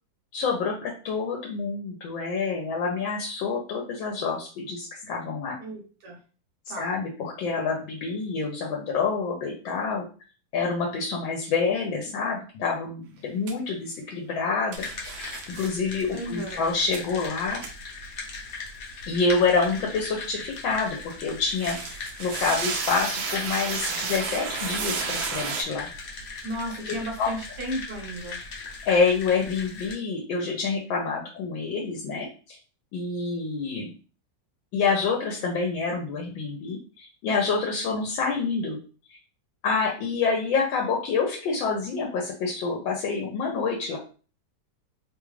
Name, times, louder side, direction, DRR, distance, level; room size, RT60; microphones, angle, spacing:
voice 1, 0.3-5.6 6.8-10.1 10.5-15.1 15.5-17.6 19.1-25.9 27.2-27.3 28.8-32.6 32.9-33.9 34.7-38.8 39.1-39.2 39.6-44.0, left 4 dB, 80° left, 0 dB, 1.4 m, -27 dB
voice 2, 5.6-6.2 6.7-6.9 16.1-16.6 26.4-28.4, equal, 60° right, 1 dB, 1.5 m, -34 dB
sound 1, 13.5-13.6 14.7-15.7 16.9-17.0 17.6-17.7 21.5-25.6, right 5 dB, 85° right, 1.4 m, -32 dB
sound 2, 14.7-29.9, left 4 dB, 55° left, 1.1 m, -39 dB
3.6 x 2.3 x 3.1 m, 0.38 s
omnidirectional pair, 2.1 m